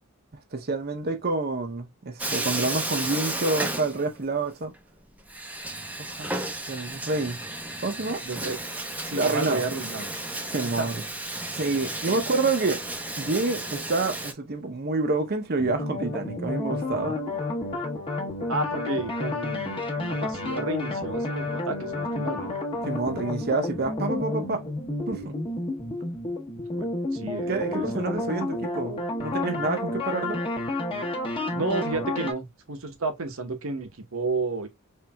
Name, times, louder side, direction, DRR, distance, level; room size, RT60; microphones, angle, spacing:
voice 1, 0.5-4.7 6.0-6.3 6.7-7.4 7.8-8.2 9.1-9.6 10.5-11.0 11.5-12.8 13.2-17.2 22.9-24.6 25.1-25.4 27.5-30.4, right 3 dB, 45° right, 0.7 m, -28 dB
Bathtub (filling or washing), 2.2-4.5 4.7-4.8 5.3-14.3, right 1 dB, 5° right, 0.6 m, -33 dB
voice 2, 8.2-8.6 9.0-10.1 10.6-10.9 12.1-12.2 18.5-22.5 26.6-28.1 31.5-34.7, right 3 dB, 65° right, 1.0 m, -32 dB
sound 1, 15.6-32.3, left 2 dB, 25° left, 0.9 m, -30 dB
4.5 x 3.2 x 2.2 m
head